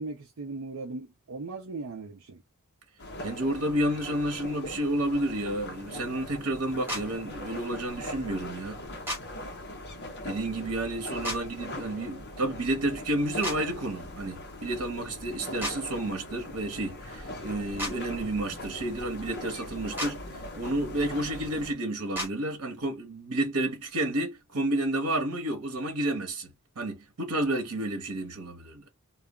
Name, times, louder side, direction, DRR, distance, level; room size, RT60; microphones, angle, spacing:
voice 1, 0.0-2.4 11.2-11.3, right 3 dB, 70° right, 0.5 m, -38 dB
sound 1, 3.0-21.7, left 1 dB, 50° left, 0.8 m, -41 dB
voice 2, 3.2-8.8 10.2-20.2 20.5-28.9, right 1 dB, 90° right, 0.9 m, -31 dB
sound 2, 6.9-7.0 9.1-9.2 11.2-11.4 13.4-13.6 15.6-15.8 17.8-17.9 20.0-20.1 22.1-22.3, equal, 10° right, 1.1 m, -31 dB
2.3 x 2.0 x 3.4 m
head